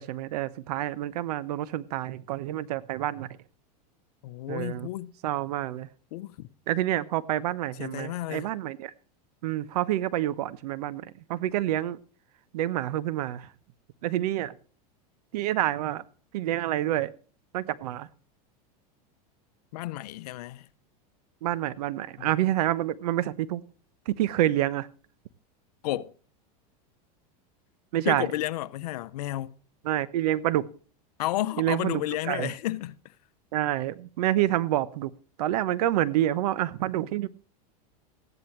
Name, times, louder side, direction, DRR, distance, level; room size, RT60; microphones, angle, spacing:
voice 1, 0.0-3.3 4.5-4.9 5.2-5.9 6.7-8.9 9.4-12.0 12.5-13.5 14.0-14.5 15.3-16.0 16.3-17.1 17.5-18.1 21.4-23.6 24.1-24.9 27.9-28.3 29.8-30.6 31.6-32.5 33.5-35.1 35.4-37.3, right 13 dB, 75° right, 1.0 m, -28 dB
voice 2, 4.2-5.1 6.1-6.5 7.8-8.5 19.7-20.7 22.2-22.3 25.8-26.1 28.0-29.6 31.2-33.1, left 15 dB, 75° left, 0.9 m, -32 dB
15.5 x 11.0 x 3.2 m
supercardioid pair, 125°, 20 cm